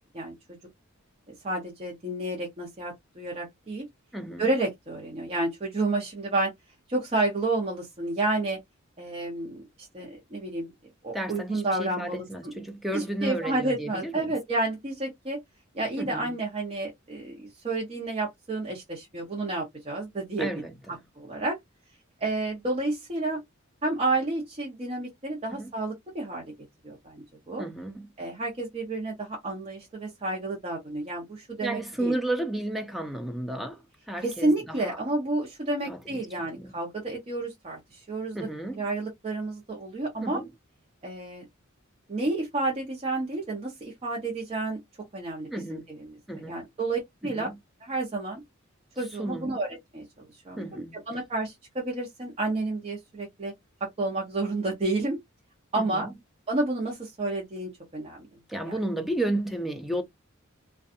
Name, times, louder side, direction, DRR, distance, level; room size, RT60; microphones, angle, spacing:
voice 1, 1.4-3.8 4.4-6.5 6.9-8.6 9.0-10.7 11.0-12.2 12.9-15.4 15.7-20.5 21.2-21.6 22.2-23.4 23.8-26.5 26.8-27.7 28.2-32.1 34.2-38.5 38.8-40.4 41.0-41.4 42.1-44.8 45.1-46.1 46.4-47.5 47.8-48.4 49.0-49.7 49.9-53.5 54.0-55.2 55.7-56.1 56.5-58.3 58.6-58.8, right 2 dB, 30° right, 0.8 m, -30 dB
voice 2, 4.1-4.5 11.1-14.3 16.0-16.4 20.4-21.0 25.5-25.7 27.6-28.1 31.6-35.0 35.9-36.2 36.6-36.7 38.3-38.8 40.2-40.5 45.5-45.9 46.3-46.6 47.2-47.6 49.2-49.6 50.6-51.0 55.8-56.1 58.5-60.0, right 1 dB, ahead, 0.4 m, -33 dB
2.5 x 2.3 x 2.5 m
head